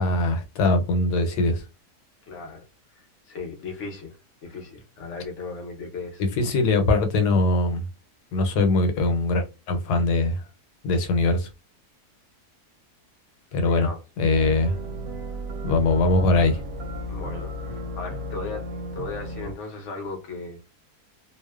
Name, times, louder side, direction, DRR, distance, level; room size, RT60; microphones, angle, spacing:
voice 1, 0.0-1.6 6.3-7.8 8.3-10.4 10.8-11.5 13.5-13.9 14.2-14.7 15.6-16.6, left 2 dB, 85° left, 1.2 m, -21 dB
voice 2, 2.2-2.6 3.0-6.2 13.6-14.0 17.1-20.6, left 3 dB, 60° left, 0.9 m, -36 dB
sound 1, 14.3-19.6, equal, 70° right, 0.9 m, -34 dB
2.7 x 2.0 x 2.2 m
omnidirectional pair, 1.7 m